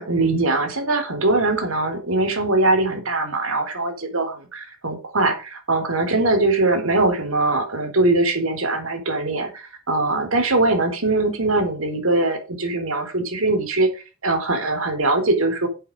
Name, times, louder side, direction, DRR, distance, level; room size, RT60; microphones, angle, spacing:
voice 1, 0.0-13.9 14.2-15.7, right 2 dB, 75° right, 5 dB, 3.8 m, -21 dB
9.5 x 8.5 x 5.3 m, 0.31 s
head